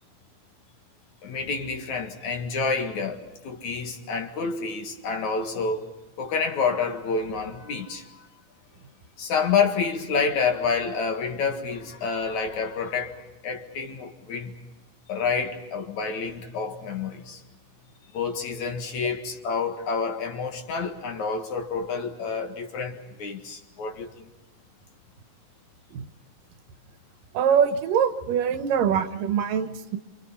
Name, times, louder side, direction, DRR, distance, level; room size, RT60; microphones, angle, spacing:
voice 1, 1.2-5.9 6.2-8.3 9.2-13.1 13.4-14.6 15.1-17.4 18.1-24.3, left 5 dB, 60° left, 3.0 m, -28 dB
voice 2, 27.3-30.0, right 7 dB, 75° right, 2.8 m, -23 dB
28.0 x 27.5 x 5.6 m
omnidirectional pair, 4.0 m